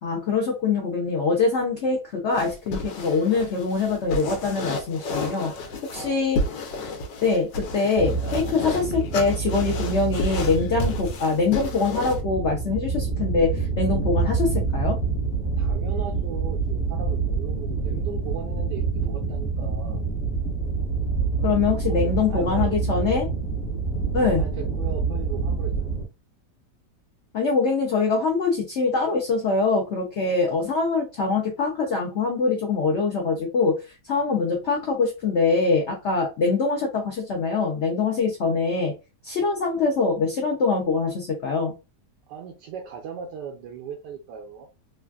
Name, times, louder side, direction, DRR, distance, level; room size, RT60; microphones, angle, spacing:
voice 1, 0.0-5.5 5.9-6.4 7.2-15.0 21.4-23.3 24.1-24.5 27.3-38.9 39.2-41.7, left 4 dB, 60° left, 0.7 m, -24 dB
sound 1, 2.3-12.2, left 2 dB, 90° left, 1.3 m, -32 dB
voice 2, 5.9-6.3 15.6-20.1 21.8-23.2 24.4-25.9 42.3-44.7, right 6 dB, 85° right, 1.2 m, -38 dB
sound 2, 8.0-26.1, right 4 dB, 40° left, 1.1 m, -27 dB
3.2 x 2.4 x 2.3 m
omnidirectional pair, 1.8 m